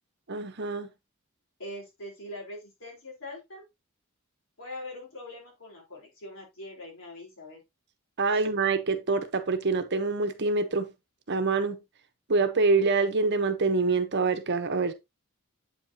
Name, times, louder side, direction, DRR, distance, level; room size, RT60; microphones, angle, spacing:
voice 1, 0.3-0.9 8.2-10.9 11.3-11.8 12.3-14.9, right 4 dB, 55° right, 1.0 m, -25 dB
voice 2, 1.6-3.6 4.6-7.6 8.3-8.4, left 1 dB, 65° left, 4.0 m, -42 dB
8.2 x 5.2 x 2.8 m
head